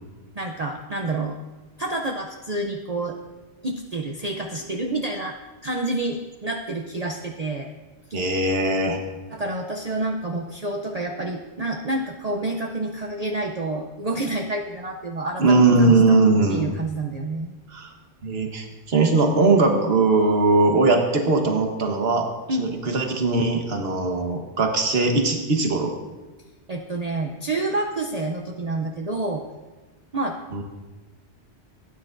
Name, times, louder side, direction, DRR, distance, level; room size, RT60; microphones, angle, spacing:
voice 1, 0.4-1.4 1.8-3.2 3.6-5.4 5.6-7.7 8.1-8.3 9.3-16.2 16.5-17.5 22.5-22.6 26.7-29.4 30.1-30.4, right 2 dB, 40° right, 1 dB, 0.7 m, -28 dB
voice 2, 8.1-9.0 15.4-16.7 17.7-17.9 18.2-22.3 22.6-25.9 30.5-30.6, right 3 dB, 65° right, 3 dB, 1.4 m, -20 dB
16.5 x 9.7 x 2.6 m, 1.2 s
omnidirectional pair, 1.1 m